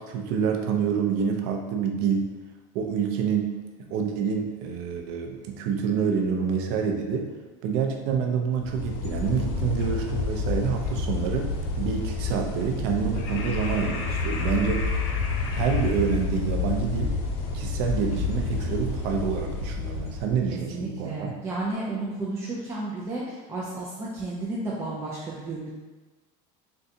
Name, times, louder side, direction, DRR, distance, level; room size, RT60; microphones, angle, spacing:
voice 1, 0.0-2.3 2.7-7.3 7.6-14.9 15.4-17.2 17.5-21.4, right 6 dB, 70° right, 2 dB, 0.5 m, -27 dB
sound 1, 8.6-20.5, left 4 dB, 75° left, 0.5 m, -29 dB
voice 2, 20.5-25.7, right 2 dB, 15° right, -6 dB, 0.4 m, -32 dB
3.8 x 2.2 x 2.7 m, 1.2 s
supercardioid pair, 125°, 18 cm